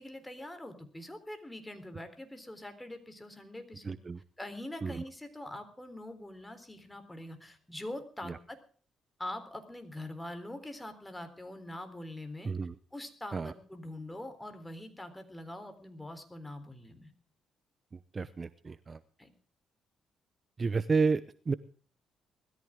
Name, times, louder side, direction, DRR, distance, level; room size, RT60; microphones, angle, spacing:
voice 1, 0.0-4.0 4.4-8.6 9.2-12.5 12.9-17.1 19.2-19.3, left 1 dB, 10° left, 7 dB, 3.8 m, -44 dB
voice 2, 3.8-4.2 4.8-5.0 8.2-8.4 12.4-12.7 13.3-13.5 18.1-19.0 20.6-21.5, right 4 dB, 35° right, 15 dB, 0.8 m, -31 dB
20.5 x 14.0 x 3.7 m, 0.44 s
cardioid pair, 90°, 0 cm